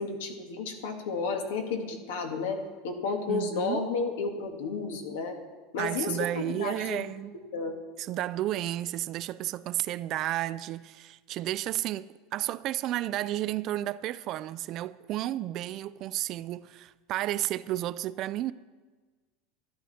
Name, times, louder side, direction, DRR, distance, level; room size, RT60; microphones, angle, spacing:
voice 1, 0.0-5.4 5.7-7.0 7.5-7.8, left 4 dB, 90° left, 1.8 m, -32 dB
voice 2, 3.3-3.9 5.8-7.3 8.0-18.5, right 14 dB, 40° right, 0.3 m, -32 dB
13.0 x 11.5 x 4.2 m
supercardioid pair, 155°, 0 cm